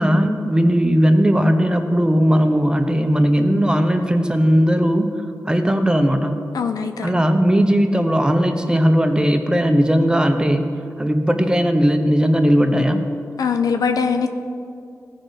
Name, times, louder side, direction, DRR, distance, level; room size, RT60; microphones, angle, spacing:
voice 1, 0.0-5.1 5.5-6.5 7.0-13.0, equal, 15° right, 6 dB, 0.8 m, -17 dB
voice 2, 6.5-7.1 13.4-14.3, left 6 dB, 85° left, 7 dB, 0.5 m, -21 dB
14.0 x 5.2 x 4.0 m, 2.5 s
cardioid pair, 45°, 6 cm